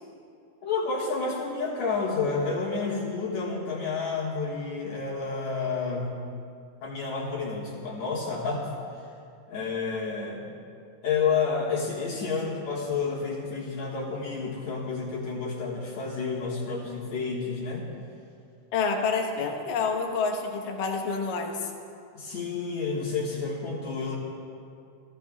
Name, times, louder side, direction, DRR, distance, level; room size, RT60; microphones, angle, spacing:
voice 1, 0.6-6.1 6.8-8.7 9.5-10.4 11.0-17.9 22.1-24.2, left 4 dB, 60° left, -4 dB, 2.7 m, -30 dB
voice 2, 18.7-21.7, left 4 dB, 75° left, 2 dB, 2.8 m, -28 dB
30.0 x 13.0 x 2.4 m, 2.4 s
omnidirectional pair, 3.9 m